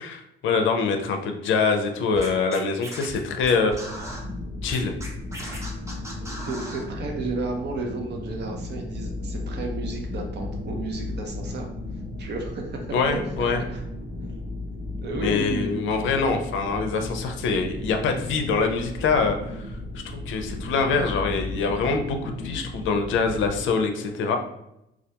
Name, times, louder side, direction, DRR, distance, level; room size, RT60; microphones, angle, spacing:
voice 1, 0.0-3.7 4.6-4.9 12.9-13.6 15.2-19.6 19.9-24.4, left 4 dB, 75° left, 5 dB, 0.4 m, -24 dB
Scratching (performance technique), 2.1-4.2 4.7-6.9, equal, 15° right, 0.7 m, -37 dB
sound 1, 3.9-23.7, left 2 dB, 90° right, 1.0 m, -35 dB
voice 2, 6.2-11.7 12.2-13.2 13.7-13.9 15.0-15.8, right 3 dB, 60° right, 2 dB, 0.6 m, -32 dB
2.3 x 2.2 x 2.8 m, 0.84 s
cardioid pair, 90°, 20 cm